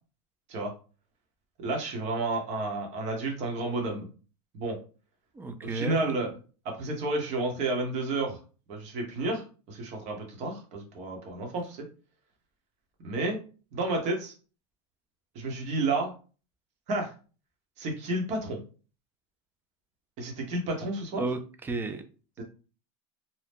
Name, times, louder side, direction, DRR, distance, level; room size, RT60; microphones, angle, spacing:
voice 1, 1.6-4.1 4.5-4.8 5.7-6.3 6.6-8.4 8.7-11.8 13.0-13.4 13.7-14.3 15.3-16.1 16.9-17.1 17.8-18.6 20.2-21.2, right 2 dB, 45° right, 2 dB, 1.1 m, -31 dB
voice 2, 5.3-6.1 21.2-22.0 22.4-22.5, right 3 dB, 15° right, 8 dB, 0.4 m, -33 dB
2.7 x 2.2 x 3.5 m, 0.36 s
supercardioid pair, 140°, 17 cm